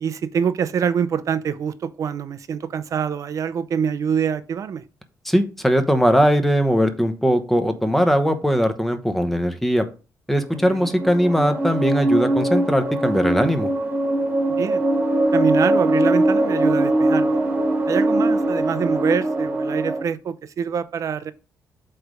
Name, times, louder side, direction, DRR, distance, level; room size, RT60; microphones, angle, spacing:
voice 1, 0.0-4.8 10.7-10.9 14.6-14.8 15.3-17.4 17.9-21.3, right 7 dB, 50° right, 0.6 m, -25 dB
voice 2, 5.3-9.9 10.3-13.7, equal, 5° left, 0.9 m, -20 dB
sound 1, 10.6-20.0, right 1 dB, 25° right, 1.4 m, -21 dB
8.0 x 3.3 x 5.0 m
cardioid pair, 140°, 7 cm